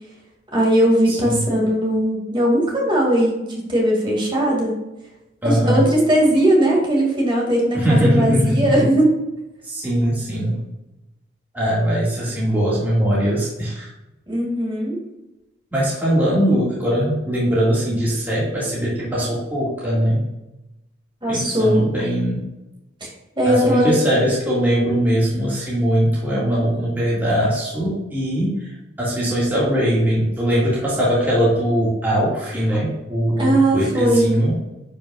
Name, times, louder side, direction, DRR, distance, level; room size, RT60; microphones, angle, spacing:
voice 1, 0.5-3.4 3.7-4.7 5.4-9.1 14.3-15.0 21.2-21.8 23.0-23.1 23.4-24.0 33.4-34.4, right 1 dB, 25° right, -2 dB, 2.2 m, -18 dB
voice 2, 1.1-1.5 5.4-5.8 7.7-8.8 9.6-10.6 11.5-13.9 15.7-20.3 21.3-22.4 23.5-34.5, equal, 10° right, -7 dB, 1.9 m, -20 dB
10.5 x 5.3 x 2.4 m, 0.96 s
head